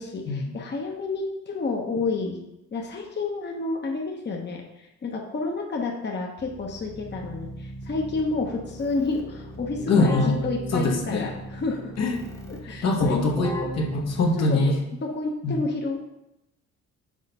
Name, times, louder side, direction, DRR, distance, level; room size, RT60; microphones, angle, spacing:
voice 1, 0.0-2.4 2.7-10.2 10.4-11.9 12.5-13.2 14.4-14.6 15.0-16.0, left 3 dB, 35° left, 0 dB, 1.0 m, -30 dB
Keyboard (musical), 6.4-14.7, right 1 dB, 10° left, 1.1 m, -37 dB
voice 2, 9.9-10.3 10.7-11.3 12.0-12.2 12.6-14.8 15.4-15.5, left 2 dB, 60° left, 1 dB, 1.2 m, -23 dB
6.5 x 3.8 x 5.4 m, 0.89 s
cardioid pair, 90°, 30 cm